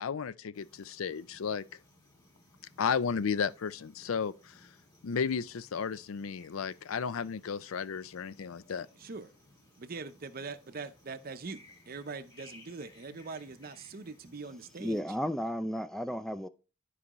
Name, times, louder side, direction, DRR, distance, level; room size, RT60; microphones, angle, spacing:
voice 1, 0.0-1.6 2.8-4.6 5.0-8.9, left 6 dB, 80° left, 0.5 m, -33 dB
sound 1, 0.5-15.0, left 1 dB, 20° left, 2.2 m, -60 dB
voice 2, 8.7-9.3 9.8-15.0, right 4 dB, 45° right, 0.7 m, -43 dB
voice 3, 14.8-16.5, equal, ahead, 0.4 m, -33 dB
12.5 x 4.8 x 3.0 m
head